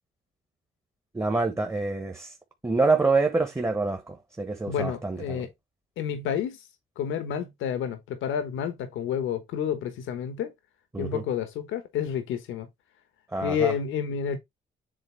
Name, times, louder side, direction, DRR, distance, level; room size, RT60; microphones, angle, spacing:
voice 1, 1.1-2.3 2.6-5.4 10.9-11.2 13.3-13.7, right 3 dB, 15° right, 1.1 m, -26 dB
voice 2, 4.7-5.5 6.0-6.7 7.0-10.5 11.0-12.7 13.4-14.4, left 8 dB, 85° left, 1.2 m, -30 dB
7.8 x 3.6 x 3.4 m
cardioid pair, 90°, 20 cm